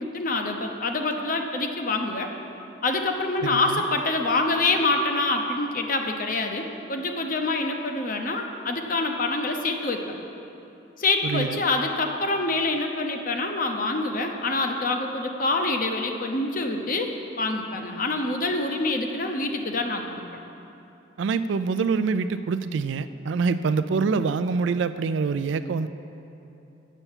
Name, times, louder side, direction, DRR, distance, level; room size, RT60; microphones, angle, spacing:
voice 1, 0.0-2.3 2.8-10.1 11.0-20.2, left 2 dB, 45° left, 4 dB, 0.7 m, -26 dB
voice 2, 3.4-3.8 11.2-11.6 21.2-25.9, right 5 dB, 70° right, 12 dB, 0.3 m, -25 dB
8.3 x 6.8 x 7.3 m, 2.9 s
head